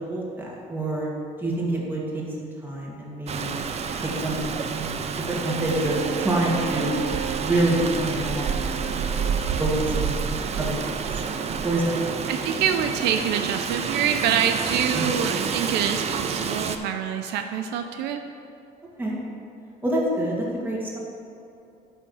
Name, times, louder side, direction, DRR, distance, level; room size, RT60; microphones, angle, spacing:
voice 1, 0.1-1.1 1.4-3.5 4.0-5.0 5.3-7.0 7.4-9.1 9.6-10.9 11.6-11.9 14.9-15.1 19.0-19.2 19.8-21.0, right 1 dB, 10° right, -5 dB, 2.2 m, -27 dB
Rain, 3.3-16.8, right 6 dB, 40° right, 0.6 m, -29 dB
Bowed string instrument, 5.4-9.8, right 8 dB, 65° right, 1.0 m, -35 dB
voice 2, 12.3-18.2, right 8 dB, 85° right, 6 dB, 0.6 m, -26 dB
10.0 x 3.6 x 7.1 m, 2.7 s
cardioid pair, 110°, 17 cm